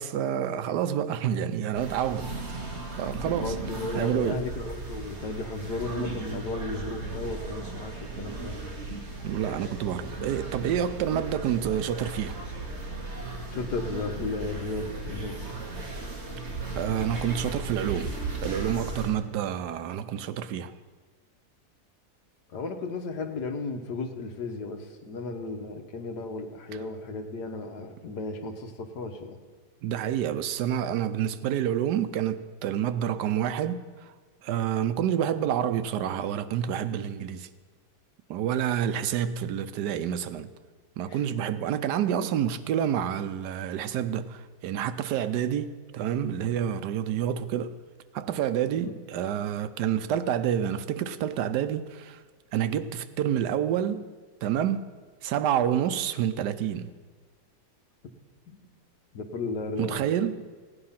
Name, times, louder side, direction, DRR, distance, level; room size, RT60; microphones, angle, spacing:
voice 1, 0.0-2.3 3.0-3.5 3.9-4.4 9.2-12.4 16.8-18.1 18.4-20.7 29.8-34.1 34.4-37.5 38.3-40.5 41.0-47.7 48.1-52.2 52.5-54.1 54.4-55.0 55.2-56.9 59.8-60.3, right 9 dB, 90° right, 1.3 m, -28 dB
sound 1, 1.7-19.1, right 3 dB, 45° right, 2.1 m, -36 dB
voice 2, 3.4-8.7 10.6-10.7 13.5-15.6 22.5-29.4 41.1-41.2 48.7-48.9 58.5-58.6 59.1-60.1, left 3 dB, 80° left, 1.7 m, -34 dB
16.0 x 9.6 x 5.7 m
omnidirectional pair, 1.7 m